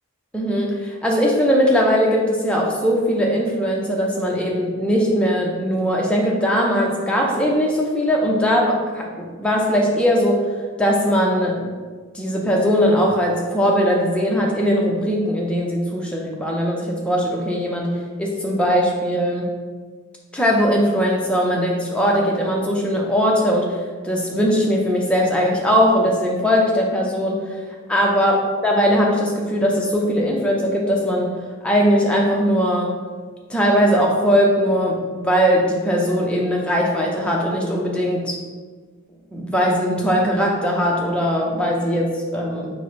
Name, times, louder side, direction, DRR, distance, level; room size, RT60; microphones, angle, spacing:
voice 1, 0.3-10.5 10.8-11.6 12.1-17.9 18.2-19.5 20.3-23.8 24.0-27.4 27.9-28.4 28.6-31.3 31.6-32.9 33.5-38.4 39.3-42.7, equal, 5° left, -2 dB, 0.5 m, -20 dB
4.7 x 2.0 x 4.1 m, 1.5 s
head